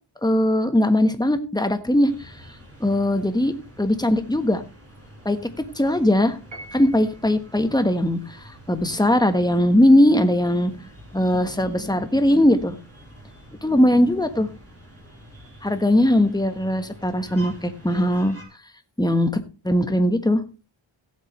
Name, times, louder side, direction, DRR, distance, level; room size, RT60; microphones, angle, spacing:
voice 1, 0.2-2.3 2.8-4.6 5.2-5.4 5.8-6.4 6.7-10.8 11.1-12.8 13.6-14.5 15.6-18.4 19.0-20.4, left 1 dB, 10° left, 8 dB, 1.4 m, -20 dB
sound 1, 2.1-18.4, equal, 30° right, 4.3 m, -46 dB
Piano, 6.5-7.4, right 1 dB, 70° right, 2.7 m, -43 dB
17.0 x 7.5 x 3.3 m, 0.32 s
wide cardioid pair, 65°, 47 cm